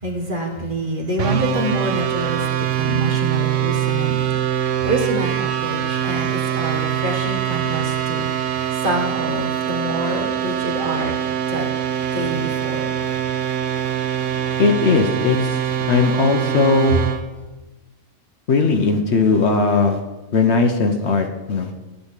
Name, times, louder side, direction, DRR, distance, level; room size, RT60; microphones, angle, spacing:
voice 1, 0.0-11.2 11.5-11.7 12.0-13.0, right 1 dB, 40° right, 0 dB, 1.7 m, -26 dB
sound 1, 1.2-17.2, right 10 dB, 65° right, 1.1 m, -23 dB
voice 2, 14.6-17.1 18.5-20.0 20.3-21.7, left 4 dB, 60° left, 5 dB, 1.1 m, -18 dB
12.0 x 4.3 x 8.2 m, 1.1 s
omnidirectional pair, 1.4 m